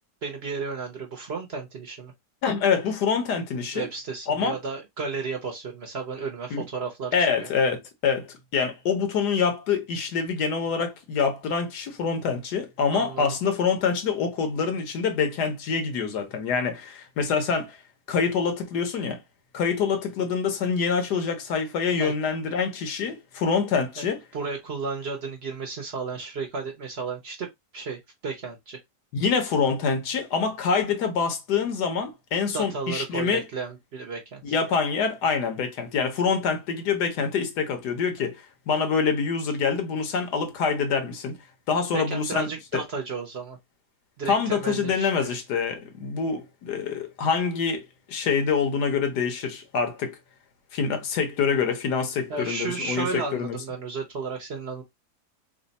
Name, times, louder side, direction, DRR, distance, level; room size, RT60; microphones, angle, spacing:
voice 1, 0.2-2.1 3.7-7.5 12.9-13.3 22.0-22.1 24.0-24.1 24.3-28.8 32.5-34.4 41.7-43.6 44.2-45.3 52.3-54.8, right 4 dB, 55° right, 0.8 m, -33 dB
voice 2, 2.4-3.9 4.3-4.6 6.5-6.7 7.1-17.8 18.1-19.2 19.5-24.2 29.1-33.5 34.4-41.4 41.7-42.8 44.3-50.2 50.7-53.6, left 5 dB, 85° left, 1.5 m, -26 dB
3.4 x 2.1 x 4.0 m
omnidirectional pair, 1.7 m